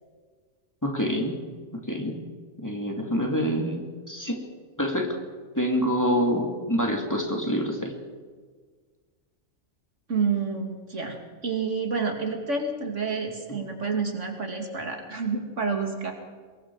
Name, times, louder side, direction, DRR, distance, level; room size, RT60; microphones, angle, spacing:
voice 1, 0.8-1.3 1.7-2.2 2.6-4.4 4.8-5.2 5.6-7.9, equal, 15° left, 1 dB, 2.8 m, -26 dB
voice 2, 10.1-11.2 11.4-16.1, right 5 dB, 65° right, 3 dB, 2.8 m, -29 dB
24.5 x 21.5 x 4.9 m, 1.5 s
omnidirectional pair, 1.3 m